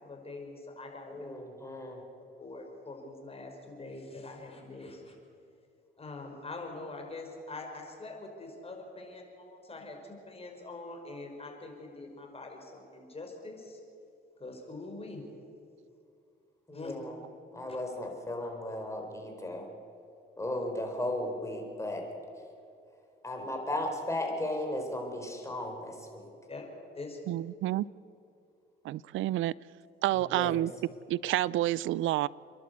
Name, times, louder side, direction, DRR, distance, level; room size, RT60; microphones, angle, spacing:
voice 1, 0.0-1.3 2.4-5.1 6.0-13.8 14.4-15.2 16.7-16.9 26.5-26.7 26.9-27.4, left 3 dB, 30° left, 5.0 m, -44 dB
voice 2, 1.1-2.0 16.7-17.2 17.5-19.7 20.4-22.0 23.2-26.3 30.1-30.6, left 1 dB, 15° left, 4.5 m, -35 dB
voice 3, 27.3-27.9 28.8-29.5 30.0-30.7 31.1-32.3, right 15 dB, 80° right, 0.4 m, -29 dB
29.0 x 11.5 x 8.2 m
cardioid pair, 90°, 20 cm